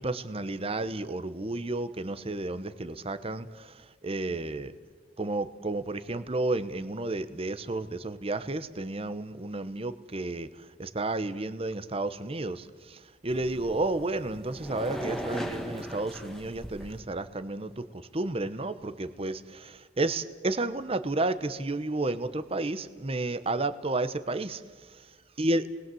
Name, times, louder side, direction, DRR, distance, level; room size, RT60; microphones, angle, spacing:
voice 1, 0.0-4.7 5.2-10.5 10.8-24.6 24.9-25.0 25.4-25.6, right 2 dB, 30° right, 12 dB, 1.0 m, -32 dB
sound 1, 13.3-17.0, equal, ahead, 1.7 m, -38 dB
30.0 x 20.5 x 7.8 m, 1.5 s
head